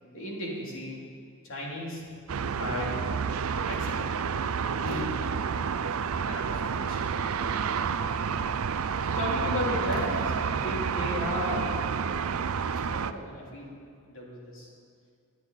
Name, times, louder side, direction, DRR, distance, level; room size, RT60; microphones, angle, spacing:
voice 1, 0.1-1.0 1.4-2.1 2.5-3.0 3.6-4.1 4.7-5.1 6.2-7.0 9.1-11.7 12.6-13.7 14.1-14.7, left 1 dB, 60° left, -3 dB, 3.3 m, -35 dB
sound 1, 2.3-13.1, right 6 dB, 70° right, 0.5 m, -29 dB
18.0 x 10.5 x 4.1 m, 2.4 s
head